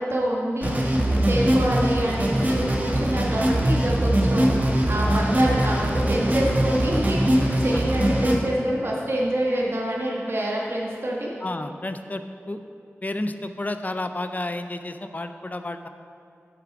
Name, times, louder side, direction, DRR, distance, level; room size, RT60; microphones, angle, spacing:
voice 1, 0.0-11.3, right 1 dB, 55° right, -3 dB, 1.2 m, -26 dB
sound 1, 0.6-8.4, right 1 dB, 35° right, 1.2 m, -22 dB
voice 2, 11.4-12.2 12.5-12.6 13.0-15.9, left 2 dB, 35° left, 8 dB, 0.5 m, -31 dB
7.6 x 6.8 x 4.7 m, 2.5 s
wide cardioid pair, 55°, 5 cm